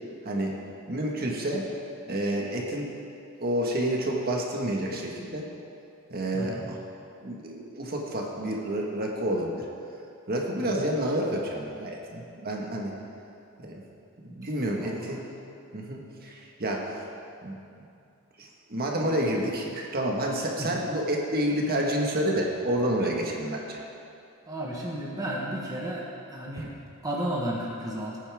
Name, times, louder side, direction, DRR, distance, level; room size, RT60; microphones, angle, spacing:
voice 1, 0.2-0.6 0.9-1.7 2.1-2.9 3.4-5.5 6.1-6.8 7.2-9.6 10.3-12.9 13.6-13.8 14.3-15.2 15.7-16.9 17.4-17.6 18.4-23.8, right 1 dB, 45° right, -1 dB, 1.5 m, -29 dB
voice 2, 6.3-6.6 10.5-10.8 14.3-14.4 14.7-15.2 20.6-20.7 24.4-26.7 27.0-28.2, right 1 dB, 15° right, -4 dB, 1.3 m, -33 dB
18.0 x 9.3 x 3.6 m, 2.7 s
head